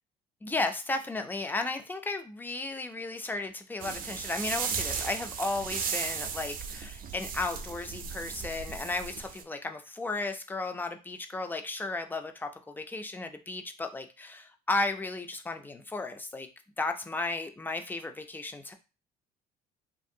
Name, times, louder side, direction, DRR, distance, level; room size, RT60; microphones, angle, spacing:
voice 1, 0.4-16.5 16.8-18.7, left 2 dB, 10° left, 6 dB, 0.3 m, -34 dB
sound 1, 3.8-9.4, right 6 dB, 55° right, 0.5 m, -36 dB
2.6 x 2.6 x 2.6 m, 0.31 s
cardioid pair, 110°, 17 cm